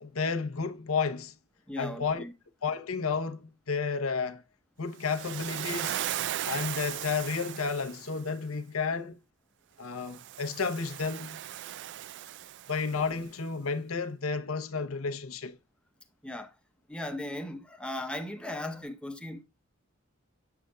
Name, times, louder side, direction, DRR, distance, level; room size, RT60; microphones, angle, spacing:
voice 1, 0.0-1.3 1.8-2.2 2.6-4.4 4.8-6.0 6.5-9.2 9.8-11.4 12.7-15.6, left 5 dB, 85° left, 0.9 m, -32 dB
voice 2, 1.7-2.3 16.2-16.6 16.9-19.4, left 1 dB, 5° left, 0.8 m, -37 dB
Waves surf, 5.0-8.2 10.0-13.1, right 12 dB, 55° right, 0.3 m, -37 dB
7.6 x 7.0 x 2.3 m
head